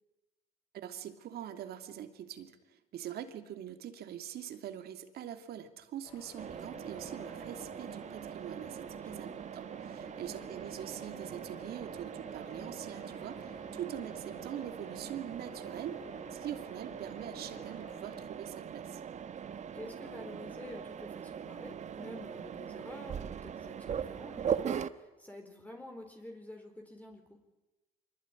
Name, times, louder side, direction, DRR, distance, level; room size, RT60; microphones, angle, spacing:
voice 1, 0.7-16.0 16.3-19.0, right 10 dB, 70° right, 8 dB, 2.8 m, -43 dB
sound 1, 6.0-18.3, left 3 dB, 35° left, 8.0 m, -55 dB
Mechanisms, 6.4-24.9, right 8 dB, 45° right, 1.3 m, -41 dB
voice 2, 8.9-9.4 10.2-10.4 13.6-13.9 19.7-27.4, left 1 dB, 10° left, 3 dB, 4.2 m, -49 dB
25.0 x 23.0 x 9.9 m, 1.1 s
cardioid pair, 110°, 17 cm